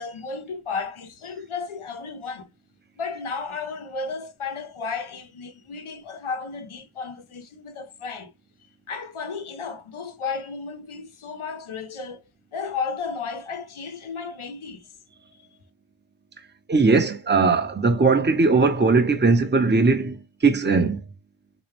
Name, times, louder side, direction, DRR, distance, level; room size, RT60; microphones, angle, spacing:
voice 1, 0.0-2.5 3.0-8.3 8.9-12.2 12.5-14.9, left 5 dB, 85° left, 0.8 m, -33 dB
voice 2, 16.7-21.0, right 4 dB, 20° right, 0.7 m, -19 dB
3.4 x 3.1 x 3.1 m
wide cardioid pair, 50°, 48 cm